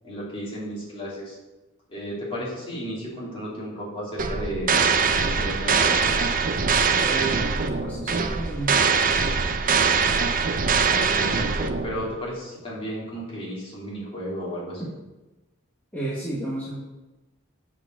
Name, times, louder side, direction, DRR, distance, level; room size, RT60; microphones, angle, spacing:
voice 1, 0.0-1.4 1.9-4.9 5.3-6.1 10.8-14.8, equal, 25° left, -6 dB, 3.0 m, -33 dB
sound 1, 4.2-12.1, right 5 dB, 40° right, 0.6 m, -22 dB
voice 2, 7.0-8.8 15.9-16.8, right 2 dB, 10° left, -7 dB, 1.5 m, -31 dB
7.8 x 4.7 x 6.6 m, 1.1 s
head